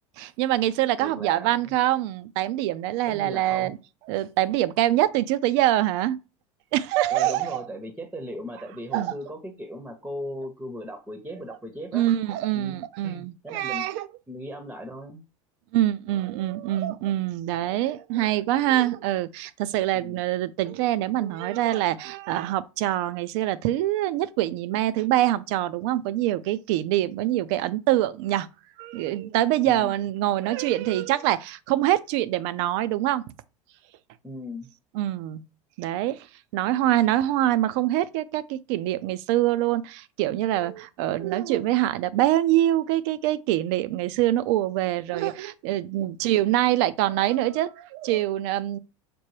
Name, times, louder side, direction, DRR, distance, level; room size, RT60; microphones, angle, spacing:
voice 1, 0.2-3.8 4.1-6.2 6.7-7.6 8.9-9.1 11.9-14.1 15.7-28.5 28.8-33.2 35.0-35.4 35.8-36.3 36.5-48.8, right 14 dB, 60° right, 0.4 m, -24 dB
voice 2, 1.0-1.6 3.1-3.7 7.1-12.1 12.5-13.8 14.3-15.2 19.9-20.2 29.6-29.9 34.2-34.7, equal, 5° right, 0.7 m, -38 dB
5.9 x 2.2 x 3.2 m
hypercardioid pair, 90°, 17 cm